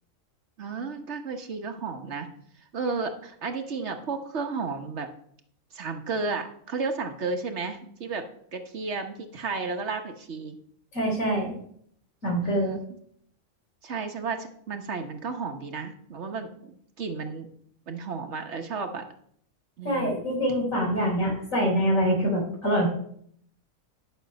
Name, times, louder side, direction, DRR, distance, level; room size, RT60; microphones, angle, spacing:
voice 1, 0.6-2.3 2.7-5.1 5.7-8.2 8.5-10.6 12.4-12.8 13.8-17.5 17.9-19.1 19.8-20.2, right 4 dB, 60° right, 6 dB, 1.2 m, -33 dB
voice 2, 10.9-11.5 12.2-12.7 19.8-22.9, equal, 70° left, -2 dB, 4.2 m, -25 dB
11.5 x 6.4 x 5.2 m, 0.65 s
omnidirectional pair, 1.4 m